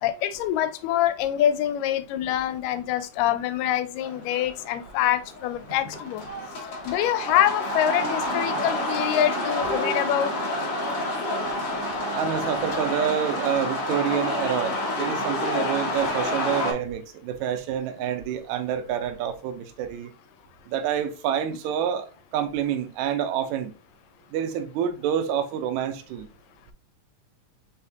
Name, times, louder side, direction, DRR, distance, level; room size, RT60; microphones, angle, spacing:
voice 1, 0.0-6.2 6.8-10.3, left 11 dB, 85° left, 2.2 m, -25 dB
sound 1, 4.0-16.7, left 1 dB, 60° left, 1.2 m, -28 dB
voice 2, 12.1-20.1 20.7-23.7 24.3-26.3, right 9 dB, 80° right, 1.8 m, -28 dB
5.6 x 3.4 x 2.4 m
omnidirectional pair, 3.8 m